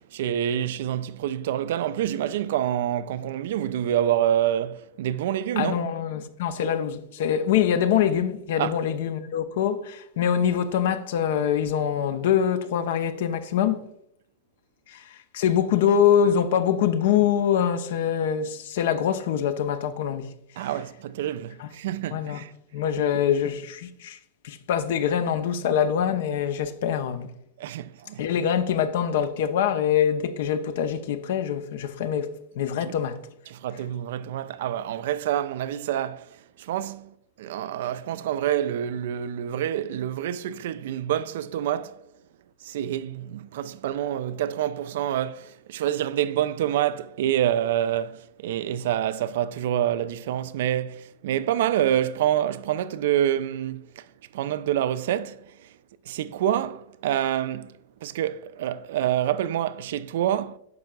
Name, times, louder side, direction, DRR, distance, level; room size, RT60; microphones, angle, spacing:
voice 1, 0.1-5.8 8.6-8.7 20.6-22.5 27.6-28.2 32.8-32.9 33.5-36.3 36.6-42.0 42.6-54.0 54.3-55.5 56.1-57.7 58.0-60.6, right 11 dB, 55° right, 0.3 m, -27 dB
voice 2, 5.6-13.8 14.9-20.3 20.6-20.7 21.6-21.7 22.1-22.4 22.7-24.2 24.4-27.3 28.2-33.2, left 9 dB, 55° left, 0.6 m, -24 dB
9.5 x 6.4 x 2.3 m
figure-of-eight pair, 90°, 0 cm